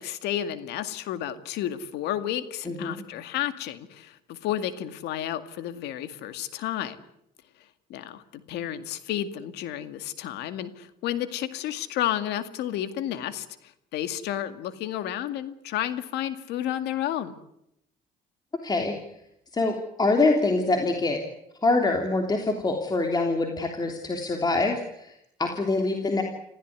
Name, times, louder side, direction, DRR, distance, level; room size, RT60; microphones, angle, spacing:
voice 1, 0.0-7.0 7.9-17.3, left 11 dB, 85° left, 11 dB, 2.1 m, -31 dB
voice 2, 2.7-3.0 18.6-19.0 19.5-21.2 21.6-25.1 25.4-26.2, left 3 dB, 25° left, 3 dB, 3.2 m, -25 dB
27.0 x 15.5 x 9.6 m, 0.79 s
cardioid pair, 110°, 17 cm